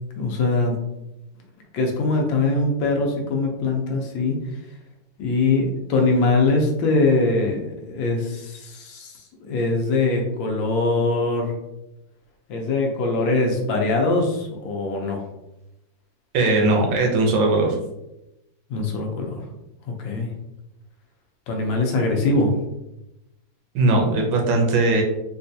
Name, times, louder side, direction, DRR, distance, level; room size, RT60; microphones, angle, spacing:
voice 1, 0.2-0.8 1.7-4.4 5.2-11.5 12.5-15.2 18.7-19.4 19.9-20.3 21.5-22.5, left 3 dB, 80° left, 1 dB, 1.4 m, -22 dB
voice 2, 16.3-17.8 23.7-25.0, right 2 dB, 80° right, 1 dB, 1.5 m, -19 dB
4.2 x 2.3 x 2.6 m, 0.90 s
omnidirectional pair, 2.1 m